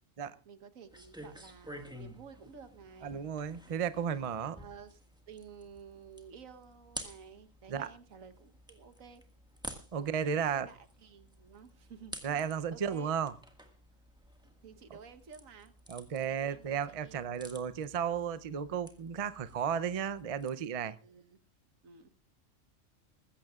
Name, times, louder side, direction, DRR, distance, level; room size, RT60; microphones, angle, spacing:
voice 1, 0.4-3.1 3.7-3.9 4.4-5.0 5.3-9.2 9.9-13.1 14.6-15.7 16.1-17.2 21.0-21.4 21.8-22.1, right 6 dB, 85° right, 1.6 m, -53 dB
sound 1, 0.9-20.5, equal, 5° right, 1.6 m, -51 dB
voice 2, 3.0-4.6 7.7-7.9 9.9-10.7 12.2-13.3 15.9-21.0, right 7 dB, 40° right, 0.5 m, -34 dB
20.5 x 15.5 x 2.4 m
omnidirectional pair, 1.4 m